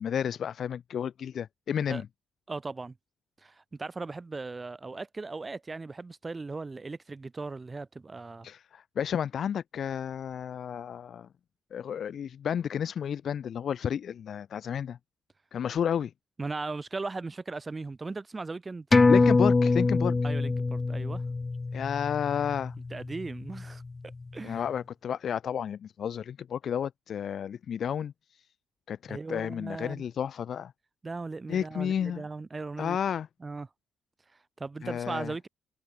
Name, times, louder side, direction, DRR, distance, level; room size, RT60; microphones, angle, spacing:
voice 1, 0.0-2.0 8.4-11.3 11.7-15.0 15.5-16.1 19.1-20.1 21.7-22.7 24.4-28.4 28.9-30.7 31.5-32.2 32.8-33.3 34.8-35.3, left 8 dB, 60° left, 1.2 m, -31 dB
voice 2, 2.5-3.0 3.4-8.5 16.4-18.9 20.2-21.2 22.9-23.8 24.3-24.7 29.1-30.0 31.0-33.0 33.4-33.7 34.6-35.5, right 3 dB, 25° right, 2.1 m, -38 dB
sound 1, 18.9-23.9 24.2-24.3, left 3 dB, 25° left, 0.4 m, -25 dB
cardioid pair, 90°, 0 cm